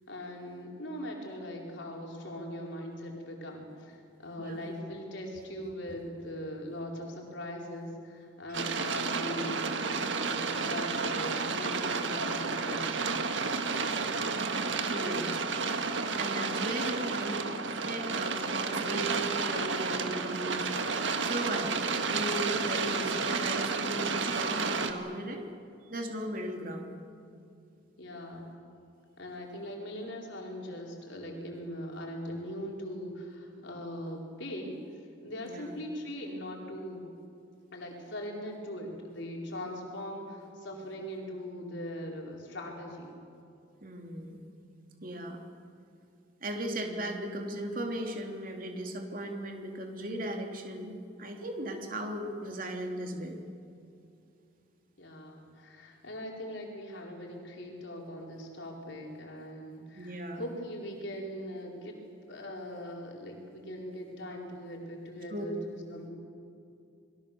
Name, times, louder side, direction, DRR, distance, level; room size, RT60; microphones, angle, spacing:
voice 1, 0.1-13.3 22.8-23.3 28.0-28.6 29.2-34.8 35.2-37.0 37.7-43.1 55.0-62.0 62.3-66.1, equal, 70° left, 0 dB, 4.7 m, -40 dB
sound 1, 8.5-24.9, right 4 dB, 70° right, 1.7 m, -31 dB
voice 2, 14.8-15.3 16.2-17.4 17.8-20.7 21.2-25.5 25.9-26.9 35.5-35.8 43.8-44.4 45.0-45.4 46.4-53.4 60.0-60.4 65.3-65.4, right 1 dB, 45° right, 2 dB, 3.2 m, -37 dB
29.0 x 22.0 x 7.1 m, 2.5 s
head